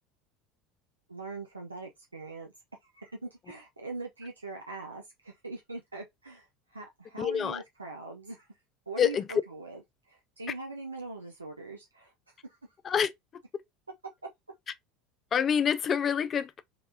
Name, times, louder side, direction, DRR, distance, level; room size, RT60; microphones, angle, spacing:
voice 1, 1.1-2.5 2.8-8.5 8.9-9.8 10.1-12.1 12.4-12.6, right 3 dB, 85° right, 0.6 m, -42 dB
voice 2, 7.2-7.6 9.0-9.3 12.8-13.1 15.3-16.6, left 8 dB, 35° left, 0.5 m, -27 dB
4.0 x 3.3 x 2.8 m
figure-of-eight pair, 75°, 0 cm